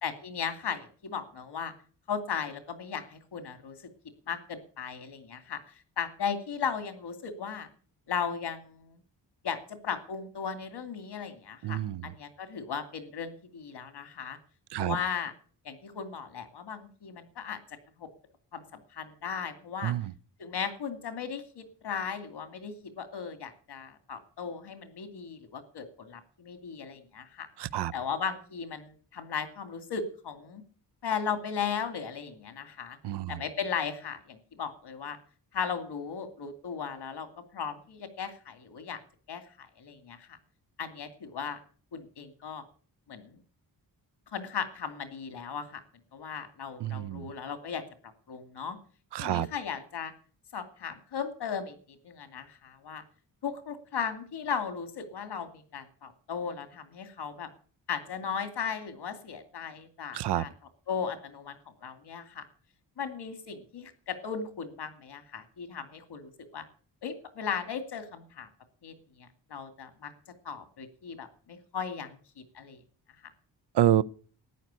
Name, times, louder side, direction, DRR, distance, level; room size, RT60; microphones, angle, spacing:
voice 1, 0.0-1.7 2.1-3.8 4.3-5.6 6.0-7.7 8.1-9.0 9.4-14.4 14.8-15.3 15.6-17.6 18.0-18.1 18.5-18.6 18.9-19.9 20.4-27.5 27.9-30.6 31.0-33.0 33.3-35.2 35.5-37.3 37.5-39.0 39.3-40.4 40.8-41.6 41.9-42.6 43.1-43.3 44.3-45.8 46.1-47.8 48.3-48.8 49.2-50.1 50.5-53.0 53.4-57.5 57.9-60.5 60.9-62.4 63.0-66.6 67.0-68.5 68.8-70.1 70.4-72.2 72.5-72.8, left 6 dB, 70° left, 2.5 m, -36 dB
voice 2, 11.6-12.1 14.7-15.0 19.8-20.1 27.6-27.9 33.0-33.4 46.8-47.3 49.1-49.5 60.1-60.4 73.7-74.0, right 12 dB, 75° right, 0.7 m, -28 dB
13.5 x 9.5 x 8.2 m
cardioid pair, 100°, 41 cm